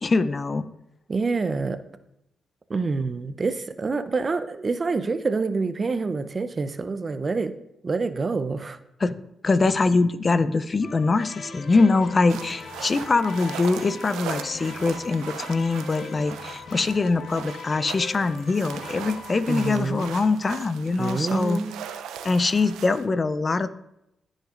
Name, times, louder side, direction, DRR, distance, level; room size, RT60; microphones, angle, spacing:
voice 1, 0.0-0.7 9.0-9.2 9.4-21.6 22.2-23.7, left 3 dB, 40° left, 14 dB, 0.6 m, -23 dB
voice 2, 1.1-1.8 2.7-7.5 7.8-8.8 19.5-20.1 21.0-21.8, right 4 dB, 40° right, 11 dB, 0.7 m, -27 dB
sound 1, 10.8-19.7, left 5 dB, 60° left, 1.2 m, -41 dB
sound 2, 12.3-23.1, right 8 dB, 85° right, 0.5 m, -39 dB
15.0 x 6.4 x 2.5 m, 0.84 s
supercardioid pair, 50°, 0 cm